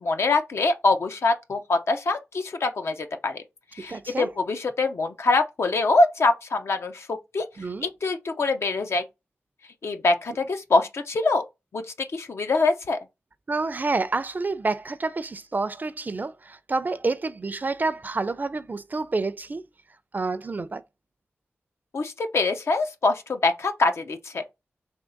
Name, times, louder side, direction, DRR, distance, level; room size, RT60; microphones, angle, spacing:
voice 1, 0.0-3.4 3.7-7.5 7.8-9.0 9.8-11.4 11.7-13.0 21.9-24.4, left 3 dB, 70° left, 0.7 m, -24 dB
voice 2, 3.9-4.3 7.6-7.9 13.5-19.6 20.1-20.8, right 3 dB, 40° right, 0.4 m, -28 dB
3.6 x 2.8 x 3.9 m
cardioid pair, 55°, 5 cm